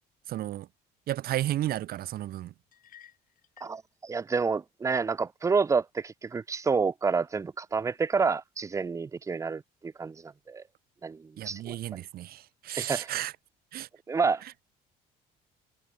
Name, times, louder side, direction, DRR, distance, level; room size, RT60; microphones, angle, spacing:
voice 1, 0.3-0.7 1.1-2.5 11.4-13.3 13.7-13.9, right 14 dB, 65° right, 0.9 m, -33 dB
sound 1, 2.7-3.8, left 10 dB, 55° left, 7.7 m, -55 dB
voice 2, 3.6-10.6 11.0-11.8 12.8-13.1 14.1-14.4, right 5 dB, 20° right, 0.4 m, -29 dB
cardioid pair, 110°, 17 cm